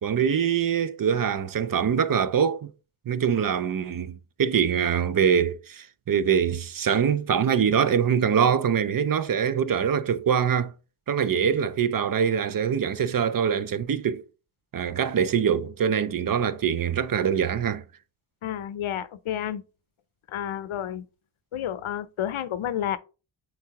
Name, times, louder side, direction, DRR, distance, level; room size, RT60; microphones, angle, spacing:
voice 1, 0.0-2.7 3.1-10.7 11.1-14.2 14.7-17.8, right 7 dB, 45° right, 0.5 m, -24 dB
voice 2, 18.4-19.6 20.3-21.1 21.5-23.0, left 10 dB, 85° left, 0.7 m, -30 dB
7.9 x 4.7 x 2.8 m
wide cardioid pair, 130°, 47 cm